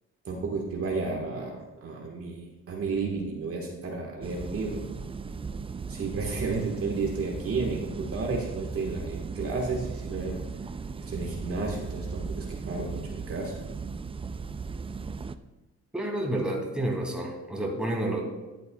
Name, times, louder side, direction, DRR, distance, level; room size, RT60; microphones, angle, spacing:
voice 1, 0.2-4.8 5.9-10.4 11.1-13.6, right 4 dB, 50° right, 0 dB, 1.5 m, -32 dB
sound 1, 4.2-15.3, right 5 dB, 20° right, 0.3 m, -37 dB
voice 2, 15.9-18.2, right 1 dB, 5° right, -2 dB, 2.6 m, -29 dB
12.5 x 8.3 x 2.3 m, 1.1 s
cardioid pair, 90°, 30 cm